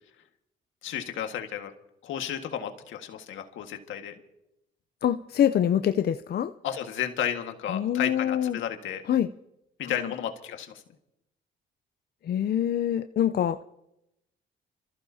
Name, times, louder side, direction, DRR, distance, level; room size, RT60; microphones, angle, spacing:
voice 1, 0.8-1.7 2.0-4.2 6.6-9.0 9.8-10.7, left 9 dB, 80° left, 5 dB, 1.7 m, -33 dB
voice 2, 5.0-6.5 7.7-8.6 9.1-9.3 9.8-10.1 12.2-13.6, left 10 dB, 55° left, 9 dB, 0.6 m, -25 dB
28.0 x 14.5 x 2.8 m, 0.85 s
cardioid pair, 90°, 20 cm